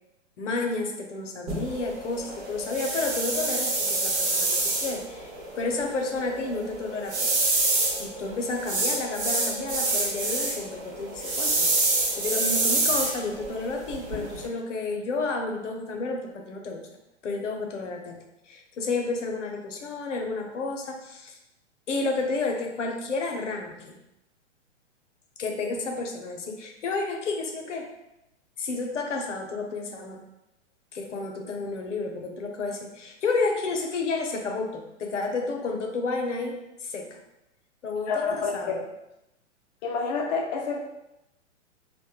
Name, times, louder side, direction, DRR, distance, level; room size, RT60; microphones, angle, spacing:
voice 1, 0.4-4.5 4.8-5.3 5.6-7.6 8.0-16.8 17.2-18.2 18.5-21.4 21.9-24.0 25.4-27.9 28.6-30.2 30.9-37.2 37.8-38.8, left 3 dB, 85° left, 2 dB, 0.6 m, -31 dB
sound 1, 1.5-14.5, right 2 dB, 65° right, 0.9 m, -27 dB
voice 2, 38.1-38.7 39.8-40.8, left 5 dB, 40° left, 0 dB, 0.4 m, -28 dB
2.9 x 2.1 x 2.3 m, 0.91 s
hypercardioid pair, 120°, 36 cm